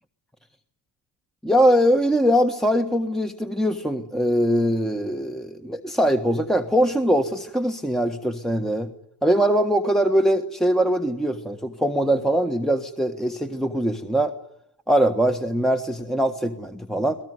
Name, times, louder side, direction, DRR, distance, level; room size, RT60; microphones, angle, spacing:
voice 1, 1.4-8.9 9.2-14.3 14.9-17.2, equal, ahead, 6 dB, 1.5 m, -22 dB
25.5 x 18.5 x 9.5 m, 0.73 s
cardioid pair, 85°, 44 cm